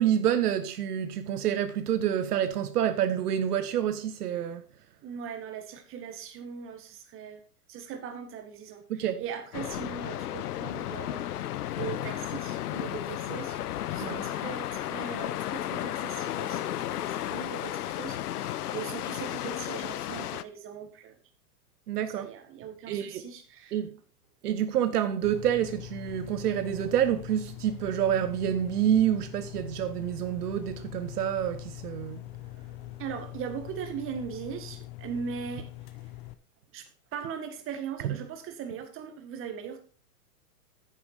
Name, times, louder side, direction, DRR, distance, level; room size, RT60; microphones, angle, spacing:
voice 1, 0.0-4.6 8.9-9.2 14.0-14.2 21.9-22.3 22.9-23.2 23.7-24.0 24.4-32.2 38.0-38.1, right 10 dB, 70° right, 1.0 m, -28 dB
voice 2, 5.0-7.4 7.7-11.3 11.7-13.6 13.9-21.2 22.1-23.8 33.0-35.7 36.7-39.8, right 7 dB, 25° right, 1.8 m, -39 dB
sound 1, 9.5-20.4, left 13 dB, 70° left, 0.8 m, -33 dB
sound 2, 25.2-36.3, left 17 dB, 35° left, 0.8 m, -43 dB
9.5 x 6.9 x 5.1 m
hypercardioid pair, 130°, 47 cm